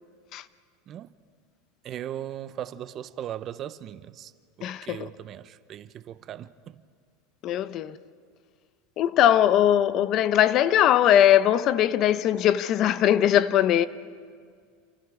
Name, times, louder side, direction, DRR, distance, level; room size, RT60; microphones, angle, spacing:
voice 1, 1.8-4.3 4.6-6.8, right 11 dB, 35° right, 0.8 m, -38 dB
voice 2, 4.6-5.1 7.4-8.0 9.0-13.9, left 11 dB, 45° left, 0.8 m, -20 dB
28.5 x 28.5 x 4.9 m
supercardioid pair, 130°, 0 cm